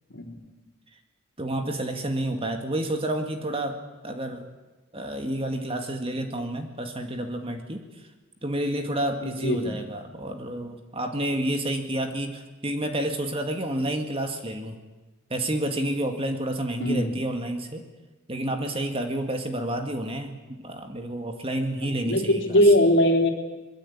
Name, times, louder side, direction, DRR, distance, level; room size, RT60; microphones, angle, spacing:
voice 1, 1.4-3.8 4.0-4.5 4.9-7.8 8.4-14.8 15.3-17.9 18.3-22.6, right 1 dB, 25° right, 5 dB, 2.1 m, -29 dB
voice 2, 9.2-9.8 16.8-17.1 21.8-23.3, equal, 55° left, 2 dB, 3.7 m, -21 dB
24.0 x 22.0 x 8.6 m, 1.2 s
head